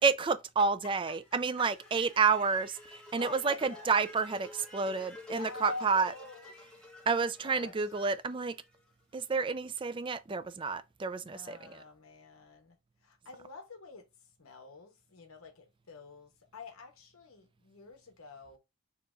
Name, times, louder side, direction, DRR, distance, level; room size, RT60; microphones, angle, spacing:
voice 1, 0.0-6.1 7.1-8.5 9.1-11.8, right 5 dB, 25° right, 0.3 m, -30 dB
sound 1, 1.2-9.3, left 1 dB, 5° left, 1.5 m, -50 dB
voice 2, 3.1-3.9 4.9-6.5 7.1-7.7 11.3-18.6, left 3 dB, 70° left, 1.0 m, -47 dB
6.7 x 3.0 x 2.5 m
head